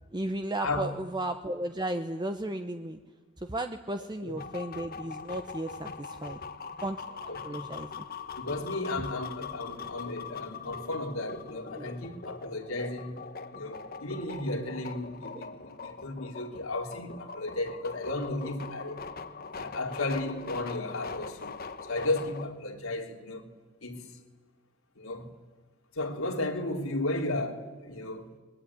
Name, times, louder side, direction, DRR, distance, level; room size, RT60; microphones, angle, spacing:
voice 1, 0.1-3.0 3.4-6.4 6.8-8.0 9.7-10.0 11.8-12.1 15.3-15.4 18.4-18.5, right 1 dB, 20° right, 0.9 m, -35 dB
sound 1, 4.4-22.4, left 5 dB, 45° left, 1.3 m, -42 dB
voice 2, 7.3-7.7 8.4-13.2 13.5-19.0 19.5-21.5 21.8-23.5 23.8-24.1 25.0-25.3 25.9-28.3, left 2 dB, 80° left, 3.4 m, -34 dB
23.5 x 22.0 x 9.9 m
head